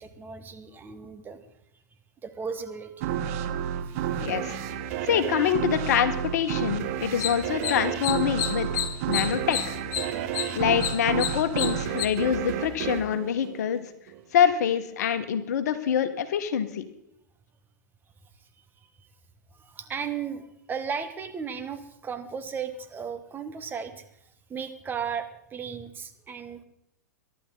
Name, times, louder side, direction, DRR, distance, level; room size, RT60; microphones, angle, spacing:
voice 1, 0.0-1.4 2.2-3.1 3.9-4.1 19.6-24.0 24.5-26.6, right 6 dB, 20° right, 8 dB, 1.6 m, -35 dB
sound 1, 3.0-14.2, right 9 dB, 50° right, 1.7 m, -31 dB
voice 2, 4.2-4.6 5.0-8.8 9.1-9.7 10.5-13.8 14.3-16.8, left 9 dB, 60° left, 10 dB, 1.5 m, -25 dB
sound 2, 7.0-12.1, left 10 dB, 40° left, 1.7 m, -32 dB
23.5 x 11.5 x 4.1 m, 0.77 s
hypercardioid pair, 105°, 10 cm